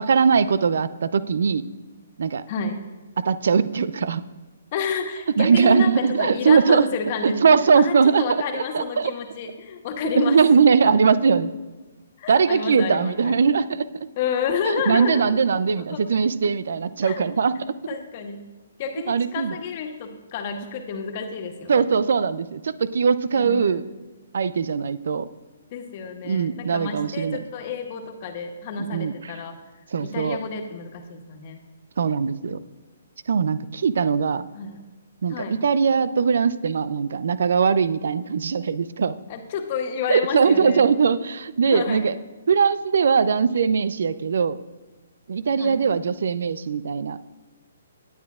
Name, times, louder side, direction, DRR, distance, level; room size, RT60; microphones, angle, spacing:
voice 1, 0.0-1.6 2.2-2.4 3.2-4.2 5.4-6.9 7.2-9.1 10.1-11.5 12.3-13.9 14.9-17.5 19.1-19.5 21.7-23.9 24.3-25.3 26.2-27.4 28.8-29.3 29.9-30.4 32.0-32.6 33.3-34.5 35.2-39.1 40.1-42.1 42.5-44.6 45.3-47.2, right 5 dB, 65° right, 16 dB, 0.5 m, -20 dB
voice 2, 2.5-2.8 4.7-7.4 7.7-10.4 10.8-11.2 12.2-13.3 14.2-15.4 15.8-16.0 17.0-17.2 17.9-18.4 18.8-21.8 23.3-23.9 25.7-29.5 30.0-31.6 34.5-34.8 35.3-35.5 39.3-40.9 41.7-42.1 45.6-45.8, left 6 dB, 40° left, 4 dB, 1.5 m, -30 dB
18.5 x 9.5 x 2.5 m, 1.2 s
figure-of-eight pair, 135°, 0 cm